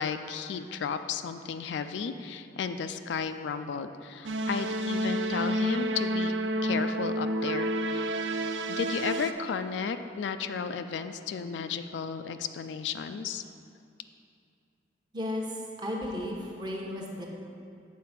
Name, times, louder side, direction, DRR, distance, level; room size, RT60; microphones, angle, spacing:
voice 1, 0.0-6.3 6.6-8.2 8.7-13.4, left 6 dB, 80° left, 9 dB, 0.3 m, -34 dB
sound 1, 4.2-9.3, right 1 dB, 80° right, 0.4 m, -30 dB
voice 2, 15.1-17.3, left 1 dB, 25° right, -2 dB, 0.9 m, -34 dB
7.4 x 4.3 x 5.7 m, 2.5 s
head